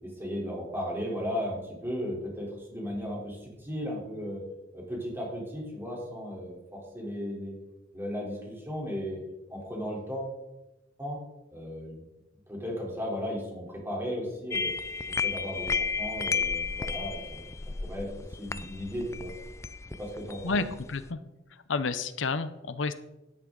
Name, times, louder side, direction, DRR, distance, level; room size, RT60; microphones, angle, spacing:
voice 1, 0.0-4.4 4.7-7.6 7.9-9.2 9.5-10.4 11.0-11.2 11.5-11.9 12.5-14.7 15.1-17.5 17.8-18.1 18.4-19.3 20.0-20.6, equal, 15° right, -2 dB, 3.5 m, -35 dB
sound 1, 14.5-21.1, left 5 dB, 15° left, 0.3 m, -33 dB
voice 2, 20.4-21.2 21.5-22.9, left 4 dB, 80° left, 12 dB, 0.7 m, -30 dB
13.0 x 11.0 x 3.8 m, 0.98 s
head